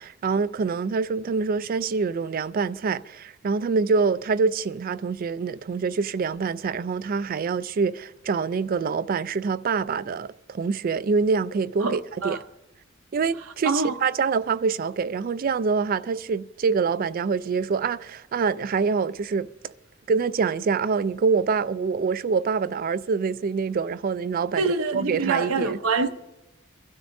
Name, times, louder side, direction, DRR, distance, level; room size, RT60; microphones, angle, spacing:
voice 1, 0.0-12.4 13.1-19.5 20.1-24.6 24.9-25.8, right 5 dB, 45° right, 0.3 m, -25 dB
voice 2, 11.8-12.4 13.6-14.0 24.6-26.1, right 4 dB, 90° right, 0.8 m, -25 dB
25.0 x 12.5 x 2.6 m
head